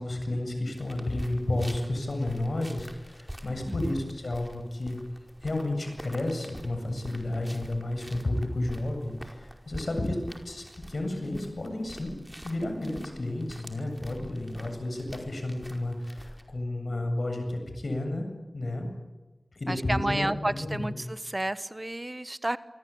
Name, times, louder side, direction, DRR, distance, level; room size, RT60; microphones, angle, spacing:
voice 1, 0.0-5.0 5.4-10.2 10.4-12.1 12.4-18.3 18.5-18.9 19.5-20.9, left 1 dB, 75° left, 5 dB, 7.9 m, -31 dB
sound 1, 0.8-16.4, equal, 10° right, 4.9 m, -46 dB
voice 2, 3.7-4.0 19.7-22.6, right 1 dB, 30° right, 13 dB, 1.2 m, -31 dB
26.5 x 23.5 x 8.7 m, 1.2 s
wide cardioid pair, 40°, 0 cm